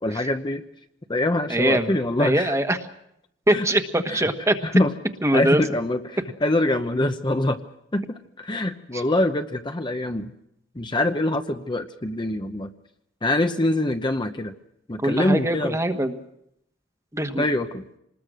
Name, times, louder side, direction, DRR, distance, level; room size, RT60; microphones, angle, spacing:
voice 1, 0.0-0.6 1.1-2.5 3.5-3.7 4.1-4.2 4.6-4.9 5.3-7.6 7.9-10.3 10.7-12.7 13.2-14.5 14.9-15.8 17.4-17.8, left 1 dB, 25° left, 7 dB, 0.9 m, -24 dB
voice 2, 1.5-1.9 2.2-2.8 3.5-4.6 5.2-5.6 8.9-9.0 15.0-16.1 17.1-17.5, right 1 dB, 15° right, 7 dB, 1.4 m, -22 dB
26.5 x 20.5 x 6.3 m, 0.78 s
head